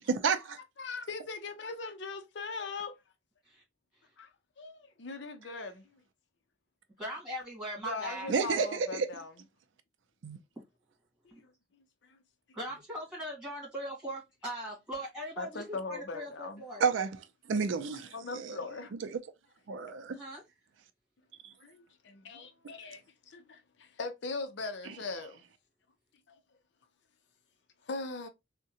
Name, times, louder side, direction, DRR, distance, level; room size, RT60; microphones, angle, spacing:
voice 1, 0.1-0.6 8.3-9.1 10.2-10.4 16.8-17.1 17.5-18.6 19.1-19.2 19.7-20.2 21.4-21.5, right 5 dB, 85° right, 0.4 m, -30 dB
voice 2, 0.8-2.9 4.2-4.3 4.6-5.8 7.8-9.3 11.3-11.5 12.1-12.2 15.4-16.6 18.1-19.0 21.6-25.4 27.9-28.3, left 3 dB, 70° left, 0.5 m, -40 dB
voice 3, 7.0-8.3 11.3-11.4 12.5-16.8 20.1-20.4, right 1 dB, 5° right, 1.8 m, -40 dB
3.6 x 2.1 x 2.7 m
head